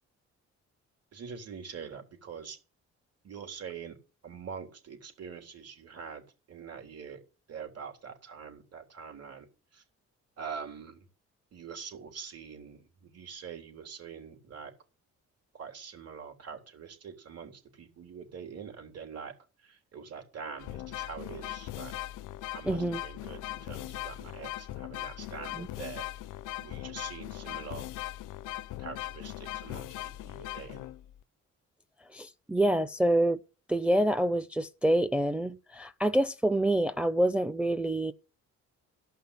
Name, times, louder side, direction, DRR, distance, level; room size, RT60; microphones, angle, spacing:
voice 1, 1.1-2.6 3.2-3.9 4.2-6.2 6.5-7.2 7.5-9.5 9.7-9.8 10.4-11.1 11.5-14.7 15.5-19.3 19.7-21.9 22.5-26.1 26.6-27.9 28.8-30.9, right 6 dB, 55° right, 3.7 m, -44 dB
sound 1, 20.6-31.2, left 15 dB, 90° left, 0.6 m, -39 dB
voice 2, 22.6-23.0 25.5-25.7 32.1-33.4 33.7-38.1, right 1 dB, 5° right, 0.7 m, -27 dB
14.5 x 5.6 x 8.5 m
cardioid pair, 90°, 30 cm